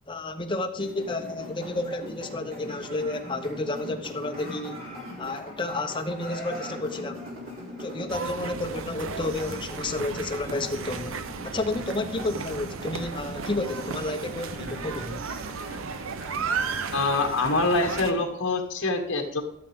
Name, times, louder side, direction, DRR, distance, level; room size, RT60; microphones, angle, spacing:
voice 1, 0.1-4.8 5.2-7.2 7.8-15.2, left 2 dB, 25° left, 0.8 m, -31 dB
sound 1, 0.8-18.2, equal, 45° right, 3.3 m, -41 dB
Laughter, 2.3-4.0 4.3-5.8 6.1-8.4, equal, 30° right, 3.7 m, -45 dB
sound 2, 8.1-18.1, right 5 dB, 70° right, 0.6 m, -35 dB
voice 2, 16.9-19.4, left 3 dB, 60° left, 1.4 m, -25 dB
13.5 x 7.1 x 3.6 m
head